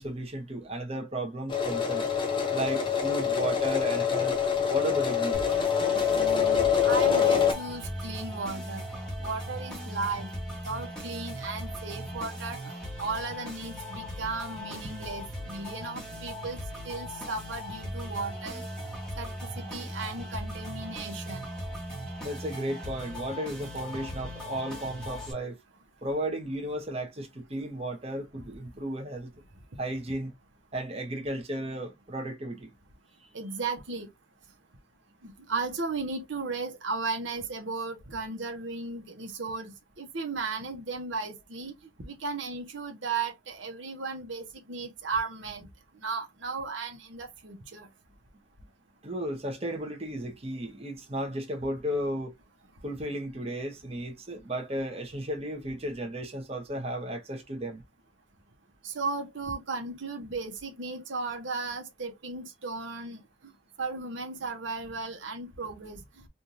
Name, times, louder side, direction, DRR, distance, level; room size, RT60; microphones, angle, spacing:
voice 1, 0.0-2.1 2.5-4.4 4.7-5.4 22.2-25.6 26.0-29.3 29.8-30.3 30.7-32.7 33.2-33.3 49.0-52.3 52.8-57.8, right 1 dB, 35° right, 1.0 m, -34 dB
sound 1, 1.5-7.5, left 7 dB, 25° left, 0.9 m, -25 dB
sound 2, 5.3-25.3, equal, 5° left, 1.4 m, -39 dB
voice 2, 6.1-8.8 9.2-12.6 13.0-18.7 19.2-21.5 33.3-34.1 35.2-41.7 42.0-45.7 46.0-47.9 58.8-63.5 63.8-66.0, right 4 dB, 85° right, 1.1 m, -35 dB
3.5 x 2.6 x 2.8 m
head